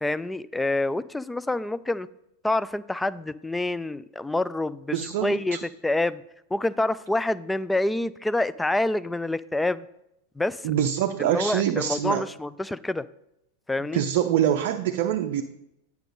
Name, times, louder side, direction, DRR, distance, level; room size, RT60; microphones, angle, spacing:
voice 1, 0.0-2.1 2.4-5.6 5.8-6.2 6.5-9.8 10.4-10.7 11.2-13.1 13.7-14.0, left 2 dB, 5° left, 17 dB, 0.3 m, -27 dB
voice 2, 4.9-5.6 10.6-12.2 13.9-15.4, right 10 dB, 50° right, 5 dB, 0.5 m, -25 dB
9.1 x 7.1 x 4.0 m, 0.83 s
figure-of-eight pair, 90°, 0 cm